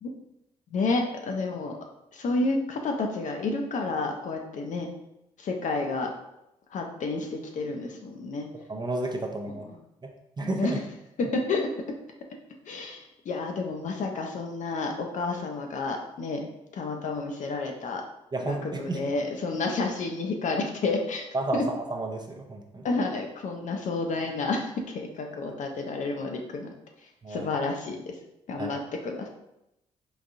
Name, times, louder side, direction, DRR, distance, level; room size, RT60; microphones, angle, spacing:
voice 1, 0.7-1.8 2.1-4.9 5.4-6.1 6.7-8.5 9.5-9.7 10.4-10.7 11.2-11.7 12.7-16.5 16.7-18.0 18.5-21.3 21.5-21.6 22.8-26.7 27.3-28.2 28.5-29.3, left 3 dB, 55° left, 3 dB, 0.5 m, -30 dB
voice 2, 8.7-9.7 10.0-10.1 10.4-10.8 18.3-19.0 21.3-22.9 27.2-27.5 28.6-28.7, right 2 dB, 25° right, 2 dB, 0.6 m, -31 dB
3.9 x 2.6 x 2.5 m, 0.87 s
hypercardioid pair, 40°, 16 cm